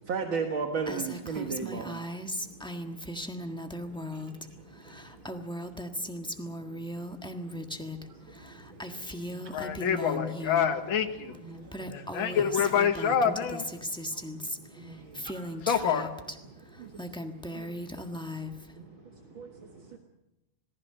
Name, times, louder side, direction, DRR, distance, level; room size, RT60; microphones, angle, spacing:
voice 1, 0.1-2.2 4.9-5.0 7.3-7.9 8.4-8.8 9.1-9.9 11.4-12.0 12.3-12.5 13.0-13.2 14.1-14.2 14.8-15.3 16.8-16.9 17.2-17.3 17.5-17.9 18.8-18.9 19.3-19.5 19.9-20.0, right 5 dB, 70° right, 4 dB, 2.3 m, -37 dB
Female speech woman speaking, 0.9-4.5 4.7-8.0 8.3-10.7 11.3-11.4 11.7-16.4 16.8-18.7, left 1 dB, 5° left, 1.2 m, -37 dB
voice 2, 2.0-10.0 11.5-12.7 13.8-15.7 16.4-20.0, right 2 dB, 45° right, 3 dB, 3.4 m, -52 dB
voice 3, 9.5-11.4 11.9-13.7 15.7-16.1, left 7 dB, 70° left, 5 dB, 2.2 m, -27 dB
27.0 x 18.5 x 6.7 m, 0.94 s
omnidirectional pair, 2.3 m